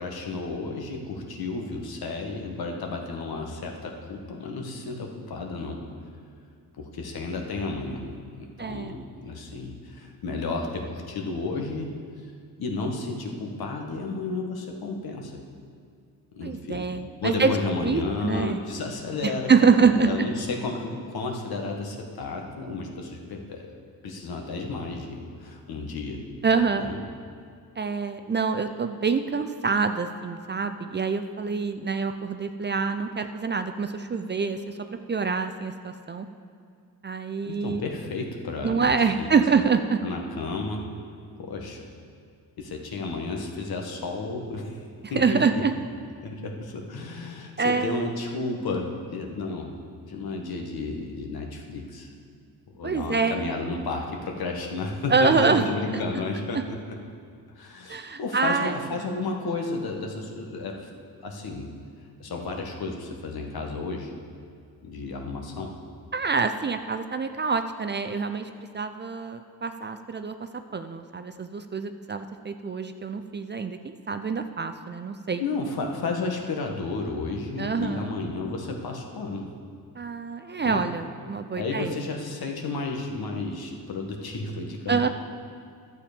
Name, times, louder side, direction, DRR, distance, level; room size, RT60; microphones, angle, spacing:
voice 1, 0.0-5.8 6.8-8.1 8.4-11.9 12.6-15.3 16.3-16.9 17.2-23.7 24.0-26.2 26.8-27.0 37.4-39.3 40.0-40.9 41.4-41.9 42.6-44.8 45.1-45.6 46.2-49.7 50.1-52.1 52.7-57.0 57.5-60.9 61.2-61.8 62.2-64.1 64.8-65.7 75.4-79.5 80.6-80.9 81.6-85.1, left 3 dB, 65° left, 1 dB, 1.5 m, -32 dB
voice 2, 8.6-8.9 16.4-17.5 17.8-18.6 19.2-20.3 26.4-26.9 27.8-34.7 35.1-36.3 37.0-37.8 38.6-40.0 45.1-45.7 47.6-48.1 52.8-53.5 55.1-55.6 57.9-58.8 66.1-70.3 70.7-75.4 77.6-78.1 80.0-81.9 84.9-85.1, right 5 dB, 30° right, 8 dB, 0.5 m, -25 dB
11.5 x 7.2 x 5.1 m, 2.3 s
cardioid pair, 80°, 39 cm